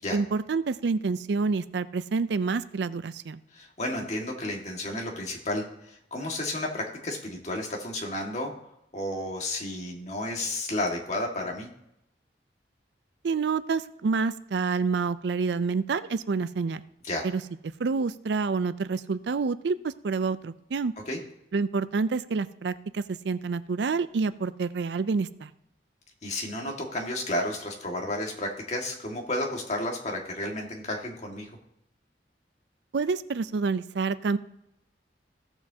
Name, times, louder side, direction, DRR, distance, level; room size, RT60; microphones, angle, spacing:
voice 1, 0.1-3.4 13.2-16.8 17.2-17.4 17.8-20.9 21.5-25.5 32.9-34.4, right 4 dB, 75° right, 14 dB, 0.4 m, -28 dB
voice 2, 3.5-8.5 8.9-11.7 17.0-17.2 21.1-21.2 26.2-31.6, left 1 dB, 40° left, 0 dB, 1.8 m, -32 dB
16.0 x 7.1 x 2.8 m, 0.81 s
head